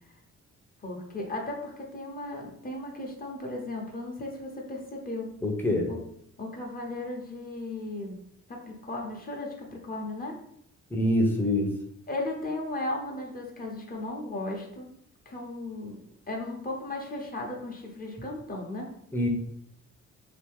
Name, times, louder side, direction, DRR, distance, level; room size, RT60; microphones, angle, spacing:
voice 1, 0.8-5.3 5.9-6.0 6.4-8.1 8.5-10.3 12.1-14.9 15.3-16.0 16.3-18.9, left 2 dB, 30° left, -1 dB, 1.0 m, -36 dB
voice 2, 5.4-5.9 10.9-11.7 19.1-19.3, left 1 dB, 5° left, 1 dB, 0.8 m, -25 dB
3.0 x 2.7 x 3.5 m, 0.72 s
cardioid pair, 90°, 30 cm